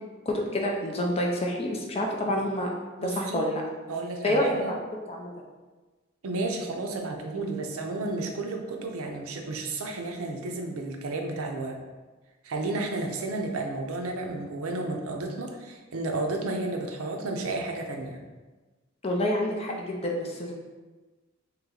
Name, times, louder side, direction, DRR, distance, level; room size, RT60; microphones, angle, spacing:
voice 1, 0.3-2.7 3.0-3.6 4.2-5.3 19.0-20.5, left 1 dB, 30° left, 0 dB, 0.5 m, -28 dB
voice 2, 3.0-3.5 3.9-4.7 6.2-11.8 12.4-18.2, right 2 dB, 80° right, 3 dB, 0.6 m, -32 dB
3.0 x 3.0 x 3.8 m, 1.3 s
head